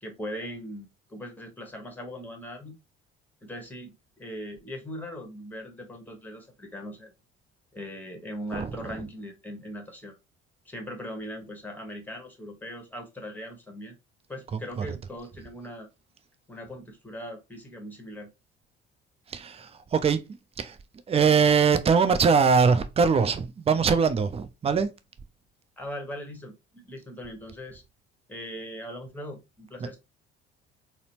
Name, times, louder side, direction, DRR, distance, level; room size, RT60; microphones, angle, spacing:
voice 1, 0.0-2.7 3.4-7.1 7.7-10.1 10.6-14.0 14.3-15.9 16.5-18.3 25.8-27.8 28.3-30.0, equal, 5° left, 1.2 m, -40 dB
voice 2, 8.5-9.0 14.5-14.9 19.3-20.3 20.6-20.8 21.1-24.9 29.8-29.9, right 5 dB, 20° right, 0.5 m, -22 dB
3.9 x 2.0 x 3.0 m
figure-of-eight pair, 55°, 32 cm